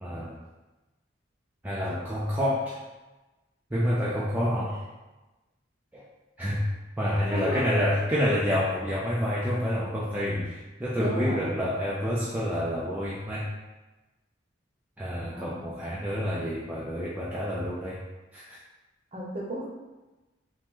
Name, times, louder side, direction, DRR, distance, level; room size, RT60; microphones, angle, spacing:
voice 1, 0.0-0.4 1.6-2.8 3.7-4.9 5.9-6.1 6.4-6.6 7.0-13.5 15.0-18.0 18.3-18.6, equal, 10° right, -7 dB, 0.4 m, -28 dB
voice 2, 7.3-7.7 10.9-11.6 15.3-15.6 19.1-19.7, equal, 30° right, -3 dB, 0.8 m, -33 dB
4.9 x 2.1 x 3.7 m, 1.1 s
head